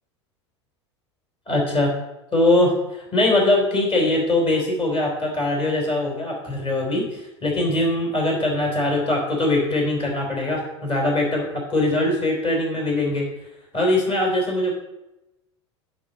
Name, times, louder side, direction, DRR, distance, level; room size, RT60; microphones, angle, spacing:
voice 1, 1.5-1.9 2.3-13.3 13.7-14.7, left 2 dB, 35° left, -1 dB, 4.1 m, -22 dB
10.0 x 4.5 x 7.1 m, 0.94 s
figure-of-eight pair, 75°, 15 cm